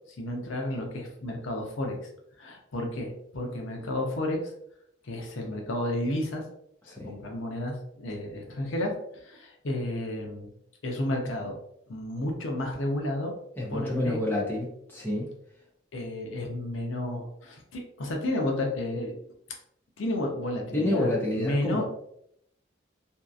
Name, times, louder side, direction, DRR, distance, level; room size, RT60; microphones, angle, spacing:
voice 1, 0.1-2.1 2.4-4.5 5.0-6.4 6.8-10.5 10.8-11.6 11.9-13.3 13.7-14.2 15.9-19.1 20.0-21.8, left 1 dB, 80° left, 1 dB, 0.6 m, -32 dB
voice 2, 13.6-15.3 20.7-21.8, left 1 dB, 10° left, -4 dB, 0.6 m, -28 dB
2.7 x 2.3 x 2.4 m, 0.72 s
head